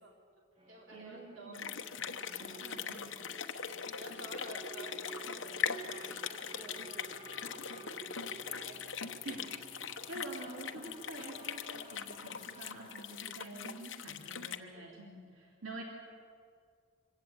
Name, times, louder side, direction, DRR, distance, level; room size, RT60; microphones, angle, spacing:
voice 1, 0.0-1.6 4.0-9.4 14.7-14.9, right 2 dB, 75° right, 0 dB, 3.9 m, -53 dB
sound 1, 0.6-13.2, right 2 dB, 30° right, 1.7 m, -53 dB
voice 2, 0.9-1.7 2.4-3.2 9.3-9.5 10.1-15.8, right 2 dB, 90° right, -1 dB, 3.5 m, -47 dB
sound 2, 1.5-14.6, left 7 dB, 65° left, 1.1 m, -41 dB
25.0 x 17.0 x 8.8 m, 2.2 s
head